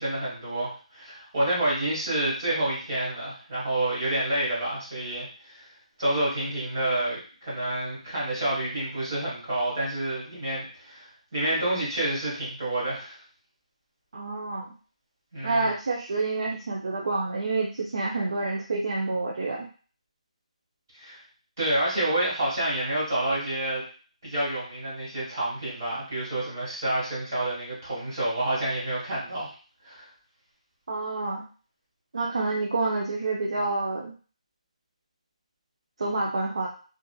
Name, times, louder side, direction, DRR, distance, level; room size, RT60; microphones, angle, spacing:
voice 1, 0.0-5.6 6.0-13.2 15.3-15.7 20.9-21.2 21.6-23.8 24.2-29.5 29.8-30.1, right 1 dB, 30° right, -8 dB, 1.4 m, -28 dB
voice 2, 14.1-14.7 15.4-19.7 30.9-31.4 32.1-34.1 36.0-36.7, right 3 dB, 50° right, -1 dB, 0.4 m, -28 dB
2.6 x 2.4 x 2.2 m, 0.38 s
hypercardioid pair, 180°, 4 cm